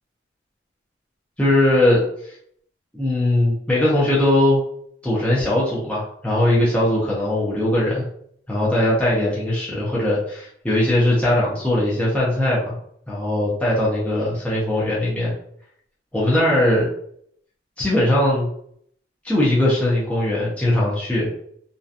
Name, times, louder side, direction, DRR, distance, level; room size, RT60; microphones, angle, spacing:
voice 1, 1.4-2.0 2.9-4.6 5.0-8.1 8.5-12.8 13.1-15.3 16.1-16.9 17.8-18.5 19.2-21.3, left 1 dB, 5° left, -7 dB, 0.6 m, -20 dB
2.7 x 2.2 x 2.4 m, 0.65 s
head